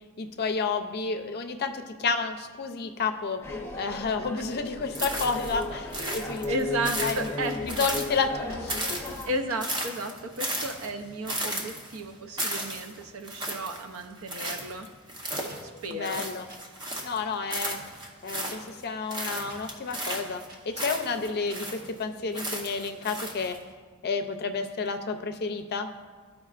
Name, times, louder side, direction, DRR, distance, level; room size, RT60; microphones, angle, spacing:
voice 1, 0.2-3.4 3.8-6.5 6.8-7.3 7.6-9.0 15.9-16.5 17.0-17.8 18.2-23.6 24.0-25.9, left 4 dB, 45° left, 6 dB, 0.5 m, -30 dB
sound 1, 3.4-9.3, left 3 dB, 10° left, 0.7 m, -35 dB
sound 2, 4.9-5.6 5.9-8.4 8.7-17.2 17.5-18.8 19.1-22.0 22.3-23.6, right 1 dB, 20° right, 0.8 m, -34 dB
voice 2, 6.5-7.9 9.3-14.9 15.6-16.2, right 2 dB, 70° right, 5 dB, 0.6 m, -34 dB
sound 3, 7.5-7.6 8.5-8.7 9.5-9.6 10.5-10.6 11.5-11.6 12.4-12.6 13.5-13.6 14.5-14.6 15.5-15.6 16.5-16.6 17.5-17.6 18.5-18.6 19.5-19.6 20.5-20.6 21.5-21.6 22.5-22.6, right 2 dB, 45° right, 1.1 m, -49 dB
13.0 x 4.9 x 2.4 m, 1.5 s
head